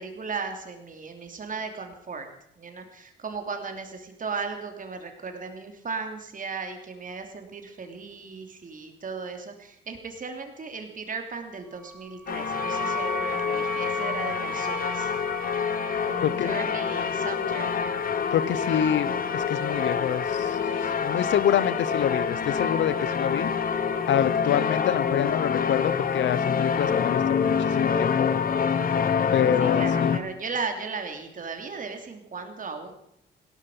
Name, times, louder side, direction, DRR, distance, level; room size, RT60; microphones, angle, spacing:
voice 1, 0.0-2.3 2.6-15.1 16.0-17.8 29.6-32.9, right 4 dB, 40° right, 5 dB, 3.0 m, -36 dB
Wind instrument woodwind instrument, 11.8-16.6, right 1 dB, ahead, 0.9 m, -35 dB
sound 1, 12.3-30.2, left 6 dB, 45° left, 1.4 m, -26 dB
voice 2, 16.2-16.5 18.3-20.6 21.0-23.5 24.1-28.3 29.3-30.2, left 10 dB, 70° left, 16 dB, 0.9 m, -26 dB
17.0 x 13.0 x 5.5 m, 0.77 s
cardioid pair, 90°, 20 cm